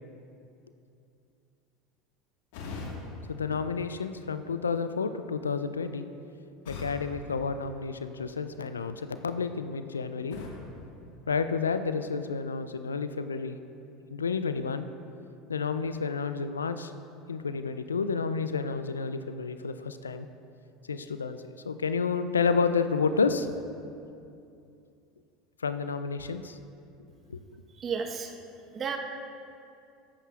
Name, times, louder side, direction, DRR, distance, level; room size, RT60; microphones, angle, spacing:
sound 1, 2.5-4.5 6.6-8.4 10.3-11.9, left 3 dB, 65° left, 1.6 m, -43 dB
voice 1, 3.3-6.1 6.7-10.4 11.3-13.6 14.1-14.9 15.5-16.9 17.3-20.3 20.9-21.4 21.7-23.6 25.6-26.6 27.3-27.4, left 5 dB, 90° left, 10 dB, 0.4 m, -30 dB
voice 2, 27.8-28.3 28.7-29.0, right 6 dB, 35° right, 3 dB, 1.1 m, -32 dB
14.0 x 11.0 x 2.4 m, 2.6 s
hypercardioid pair, 75°, 0 cm